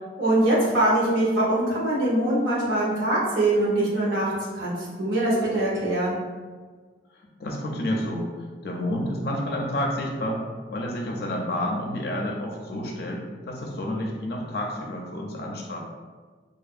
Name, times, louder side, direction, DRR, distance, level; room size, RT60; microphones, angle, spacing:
voice 1, 0.2-6.2, right 1 dB, 90° right, -6 dB, 0.9 m, -23 dB
voice 2, 7.1-10.4 10.7-15.8, left 1 dB, 55° left, 0 dB, 0.4 m, -30 dB
2.7 x 2.4 x 2.4 m, 1.5 s
head